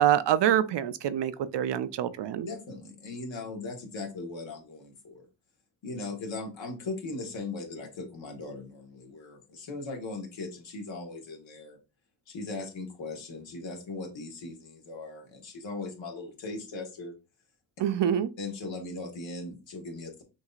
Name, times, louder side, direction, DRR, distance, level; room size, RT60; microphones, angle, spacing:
voice 1, 0.0-2.5 17.8-18.3, right 10 dB, 65° right, 0.5 m, -25 dB
voice 2, 2.5-5.2 5.8-11.8 12.3-17.1 18.4-20.2, left 3 dB, 75° left, 1.5 m, -39 dB
6.0 x 2.7 x 2.4 m
cardioid pair, 85°, 46 cm